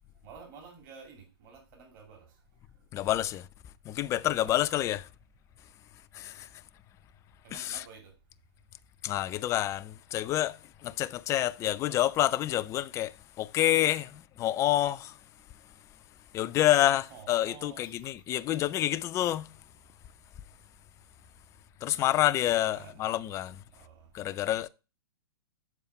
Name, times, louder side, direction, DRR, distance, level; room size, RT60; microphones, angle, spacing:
voice 1, 0.2-2.3 4.2-4.5 7.4-8.1 17.1-18.1 22.6-23.2 23.8-24.1, right 6 dB, 45° right, 2.4 m, -50 dB
voice 2, 2.9-3.5 3.9-5.1 6.1-6.5 7.5-7.8 9.0-10.6 10.8-13.1 13.4-15.1 16.3-19.5 21.8-23.6 24.1-24.7, left 13 dB, 20° left, 0.3 m, -28 dB
7.0 x 4.8 x 4.6 m
hypercardioid pair, 120°, 14 cm